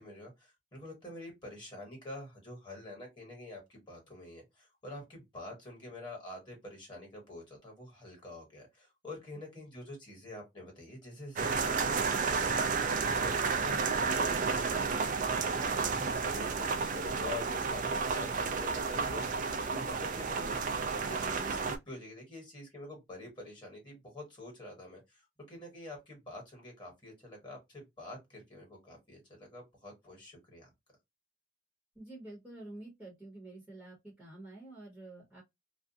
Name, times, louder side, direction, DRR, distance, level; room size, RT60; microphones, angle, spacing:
voice 1, 0.0-20.5 20.9-30.7, left 2 dB, 25° left, 1.3 m, -47 dB
sound 1, 11.4-21.8, right 5 dB, 45° right, 0.4 m, -31 dB
voice 2, 31.9-35.4, right 2 dB, 5° right, 0.9 m, -49 dB
2.4 x 2.1 x 2.6 m
head